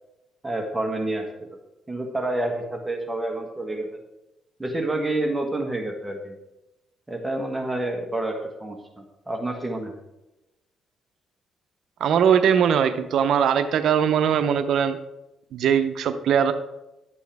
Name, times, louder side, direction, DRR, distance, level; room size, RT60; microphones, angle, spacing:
voice 1, 0.4-1.5 1.9-3.9 4.6-6.3 7.1-8.3 8.6-9.9, right 2 dB, 15° right, 3 dB, 1.5 m, -28 dB
voice 2, 12.0-15.0 15.5-16.5, right 8 dB, 70° right, 10 dB, 0.6 m, -20 dB
11.5 x 8.4 x 3.5 m, 0.96 s
cardioid pair, 90°, 0 cm